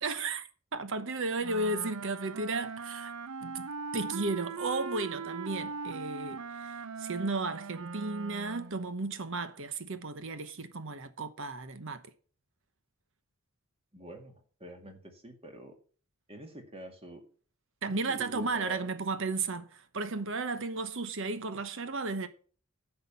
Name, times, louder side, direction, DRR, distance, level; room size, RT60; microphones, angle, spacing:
voice 1, 0.0-3.1 3.4-3.7 3.9-12.0 17.8-22.3, right 3 dB, 60° right, 1.0 m, -34 dB
Wind instrument woodwind instrument, 1.4-8.8, right 4 dB, 85° right, 0.7 m, -40 dB
voice 2, 13.9-15.7 16.3-17.2 17.8-18.9, right 1 dB, 25° right, 2.0 m, -46 dB
10.0 x 5.8 x 6.9 m
head